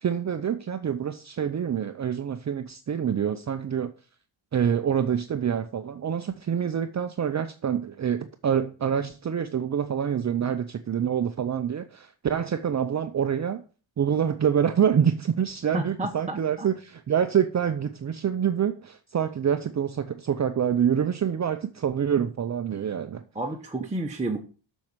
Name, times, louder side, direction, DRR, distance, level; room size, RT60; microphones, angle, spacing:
voice 1, 0.0-3.9 4.5-13.6 14.0-23.2, right 8 dB, 35° right, 0.6 m, -26 dB
voice 2, 15.7-16.7 23.3-24.4, right 2 dB, 15° right, 1.1 m, -31 dB
7.6 x 6.5 x 7.3 m
wide cardioid pair, 140°, 46 cm